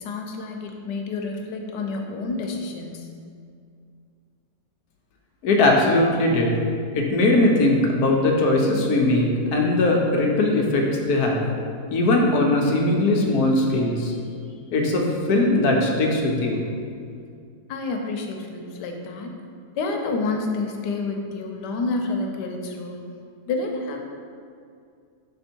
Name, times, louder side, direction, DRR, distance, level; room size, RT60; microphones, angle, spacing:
voice 1, 0.0-3.1 17.7-19.3 19.7-23.0 23.5-24.0, left 3 dB, 85° left, 3 dB, 1.3 m, -29 dB
voice 2, 5.4-6.6 6.9-11.4 11.9-14.1 14.7-16.6, left 2 dB, 70° left, 0 dB, 1.2 m, -20 dB
6.1 x 3.7 x 4.4 m, 2.3 s
omnidirectional pair, 1.8 m